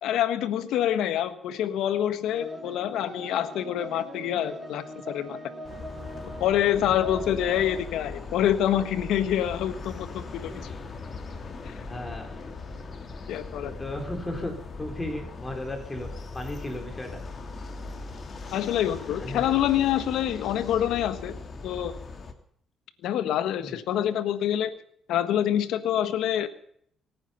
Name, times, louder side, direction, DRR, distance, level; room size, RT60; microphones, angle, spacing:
voice 1, 0.0-5.4 6.4-10.7 11.6-11.7 13.3-13.7 18.5-21.4 21.6-21.9 23.0-24.7 25.1-26.5, left 11 dB, 85° left, 11 dB, 1.4 m, -26 dB
sound 1, 2.2-9.1, equal, 25° right, 7.9 m, -42 dB
sound 2, 5.6-22.3, left 3 dB, 40° left, 2.9 m, -39 dB
voice 2, 11.9-12.3 13.6-14.5 14.8-16.1 16.3-17.2 19.2-19.4 23.6-23.8, left 1 dB, 20° left, 4 dB, 4.1 m, -35 dB
25.5 x 9.6 x 5.6 m, 0.67 s
cardioid pair, 90°, 0 cm